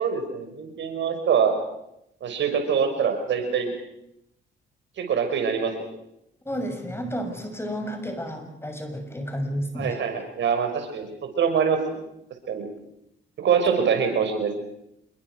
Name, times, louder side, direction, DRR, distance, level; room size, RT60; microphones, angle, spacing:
voice 1, 0.0-1.5 2.2-3.7 5.0-5.9 9.7-11.1 11.4-11.8 12.5-12.6 13.4-14.5, right 7 dB, 70° right, 6 dB, 5.9 m, -24 dB
voice 2, 6.5-10.0, equal, 10° left, 5 dB, 6.9 m, -31 dB
28.0 x 22.5 x 6.4 m, 0.81 s
cardioid pair, 90°, 20 cm